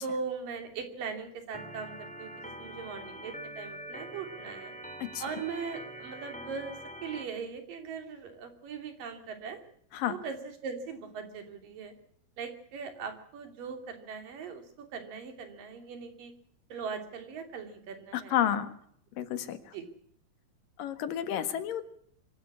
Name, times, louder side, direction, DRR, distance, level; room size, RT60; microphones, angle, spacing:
voice 1, 0.0-4.7 5.2-9.6 10.1-11.9 12.4-16.3 16.7-18.3 19.7-19.9, right 5 dB, 85° right, 6 dB, 4.6 m, -40 dB
Organ, 1.5-7.2, right 1 dB, ahead, 2.4 m, -44 dB
voice 2, 18.1-18.7 19.2-19.6 20.8-21.9, left 10 dB, 85° left, 11 dB, 3.2 m, -30 dB
25.0 x 13.0 x 8.5 m, 0.65 s
omnidirectional pair, 3.8 m